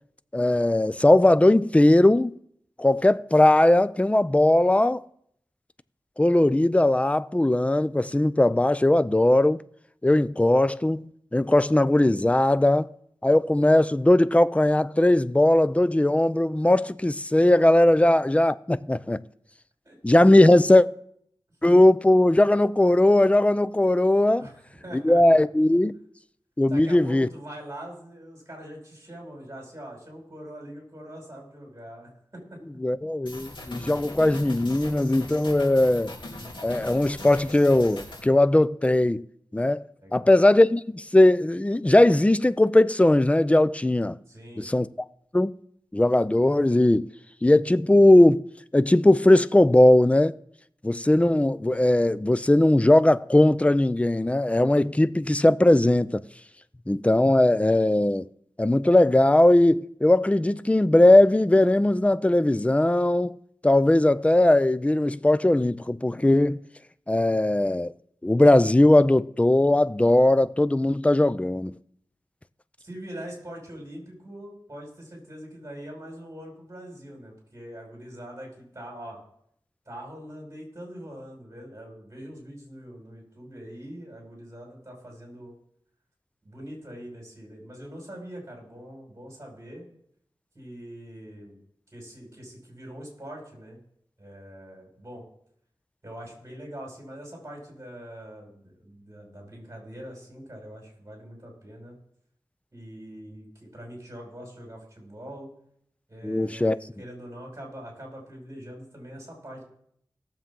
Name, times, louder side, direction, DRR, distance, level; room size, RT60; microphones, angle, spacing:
voice 1, 0.3-2.3 2.8-5.0 6.2-9.6 10.0-12.9 13.2-19.2 20.0-20.9 21.6-24.5 24.9-25.9 26.6-27.3 32.8-36.1 36.6-39.2 39.5-39.8 40.1-44.2 44.6-44.9 45.3-45.5 45.9-47.1 47.4-48.4 48.7-50.4 50.8-56.2 56.9-58.3 58.6-63.4 63.6-66.6 67.1-67.9 68.2-71.7 106.2-106.8, left 1 dB, 15° left, 0.4 m, -19 dB
voice 2, 19.8-20.3 24.4-25.4 26.7-32.4 40.0-40.4 44.3-44.7 72.8-79.2 79.9-85.5 86.4-89.8 90.5-91.6 91.9-93.8 94.2-95.2 96.0-101.9 102.7-105.5 106.1-109.6, equal, 35° right, 5.8 m, -43 dB
sound 1, 33.3-38.3, left 1 dB, 70° left, 3.2 m, -40 dB
18.5 x 7.3 x 3.7 m
wide cardioid pair, 70°, 8 cm